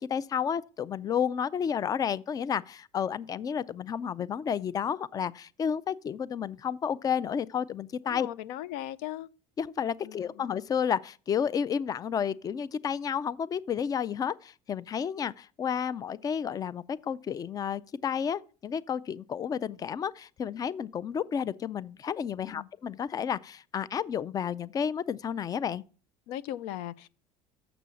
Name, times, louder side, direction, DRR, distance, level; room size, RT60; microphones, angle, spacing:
voice 1, 0.1-8.3 9.6-25.8, left 7 dB, 25° left, 0.4 m, -31 dB
voice 2, 8.0-9.3 10.0-10.3 22.4-22.7 26.3-27.1, left 12 dB, 80° left, 0.5 m, -38 dB
6.9 x 6.2 x 6.9 m
supercardioid pair, 115°, 14 cm